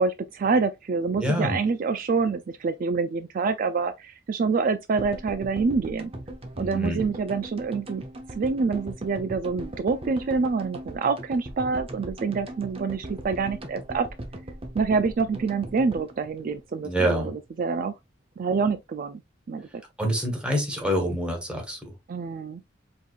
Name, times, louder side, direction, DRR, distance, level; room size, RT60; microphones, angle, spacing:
voice 1, 0.0-6.1 6.6-8.0 8.4-14.1 14.7-18.0 18.4-19.2 19.5-19.8 22.1-22.6, right 4 dB, 45° right, 0.3 m, -26 dB
voice 2, 1.2-1.6 6.5-7.0 16.8-17.3 20.0-21.9, equal, 5° right, 1.5 m, -26 dB
sound 1, 5.0-17.2 17.5-17.6 17.7-17.8, right 1 dB, 30° right, 0.9 m, -39 dB
4.8 x 3.7 x 2.4 m
head